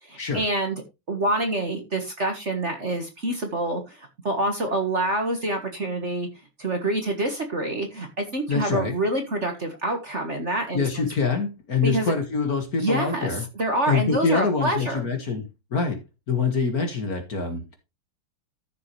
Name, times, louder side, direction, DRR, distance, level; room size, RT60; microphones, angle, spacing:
voice 1, 0.0-0.8 1.1-6.3 6.6-11.1 11.8-12.1 12.8-15.1, right 1 dB, 35° right, 1.7 m, -27 dB
voice 2, 8.5-8.9 10.7-13.4 13.9-16.0 16.3-17.7, left 5 dB, 45° left, 2.1 m, -25 dB
14.0 x 6.8 x 3.2 m
omnidirectional pair, 2.4 m